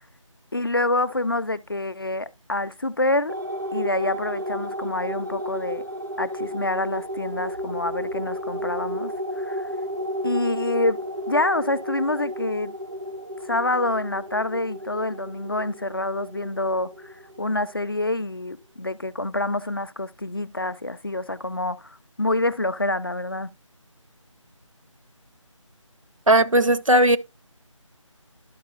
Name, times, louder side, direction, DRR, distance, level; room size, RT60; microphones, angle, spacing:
voice 1, 0.5-3.4 3.7-5.8 6.2-9.7 10.2-11.0 11.3-12.7 13.4-23.5, left 2 dB, 45° left, 0.4 m, -27 dB
sound 1, 3.3-18.1, equal, 40° right, 0.5 m, -33 dB
voice 2, 26.3-27.2, right 1 dB, 75° right, 0.9 m, -17 dB
12.0 x 5.8 x 2.5 m
figure-of-eight pair, 165°, 17 cm